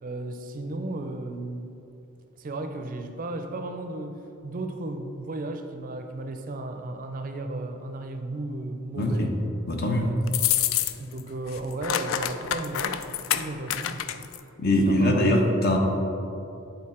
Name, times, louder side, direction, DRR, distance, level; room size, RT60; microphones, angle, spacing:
voice 1, 0.0-1.7 2.4-9.3 10.0-10.4 10.9-13.0 13.4-14.3 14.9-15.1, right 2 dB, 40° right, 6 dB, 0.4 m, -34 dB
voice 2, 9.0-9.3 9.7-10.1 14.6-15.8, left 1 dB, 50° left, 2 dB, 0.8 m, -22 dB
sound 1, 10.3-11.2 11.5-14.4, left 11 dB, 70° left, 0.3 m, -27 dB
8.5 x 3.9 x 4.3 m, 2.8 s
head